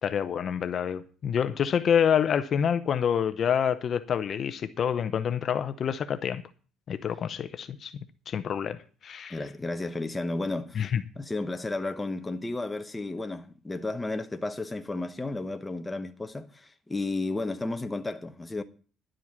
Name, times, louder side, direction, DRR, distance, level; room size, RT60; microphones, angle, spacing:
voice 1, 0.0-6.4 6.9-7.9 8.3-8.8 9.0-9.4 10.7-11.0, left 8 dB, 40° left, 0.7 m, -27 dB
voice 2, 9.3-10.9 11.2-18.6, left 2 dB, 10° left, 0.9 m, -33 dB
11.0 x 7.7 x 7.2 m
cardioid pair, 155°, 0 cm